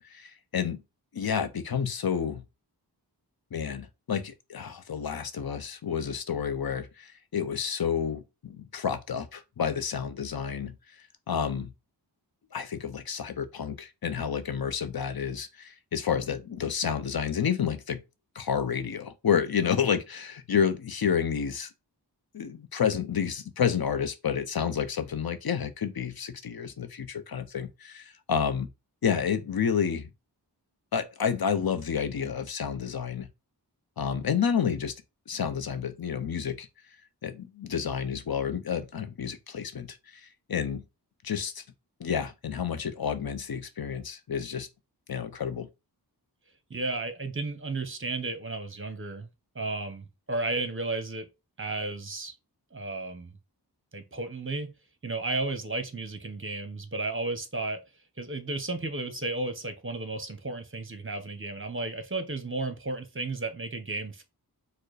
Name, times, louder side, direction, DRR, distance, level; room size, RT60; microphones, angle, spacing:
voice 1, 0.1-0.8 1.1-2.4 3.5-10.8 11.3-11.7 12.5-18.0 18.3-21.7 22.3-28.7 29.0-30.1 30.9-33.3 34.0-34.9 35.3-36.7 37.2-40.8 41.2-41.6 42.0-44.7 45.1-45.7, left 7 dB, 65° left, 0.7 m, -30 dB
voice 2, 46.7-49.3 49.5-51.3 51.6-52.3 52.7-53.3 53.9-54.7 55.0-57.8 58.2-64.2, right 2 dB, 30° right, 1.0 m, -33 dB
4.5 x 2.2 x 4.7 m
wide cardioid pair, 75°, 40 cm